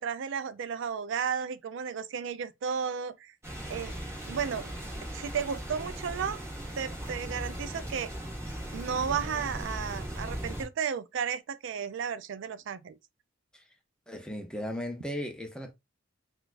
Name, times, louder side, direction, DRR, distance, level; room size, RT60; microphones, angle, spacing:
voice 1, 0.0-3.3 3.7-3.9 4.3-4.7 5.1-6.4 6.8-8.1 8.7-13.0, right 7 dB, 65° right, 0.4 m, -33 dB
sound 1, 3.4-10.6, right 1 dB, 15° right, 1.1 m, -38 dB
voice 2, 14.1-15.7, left 1 dB, 5° left, 0.6 m, -36 dB
3.9 x 2.3 x 2.4 m
head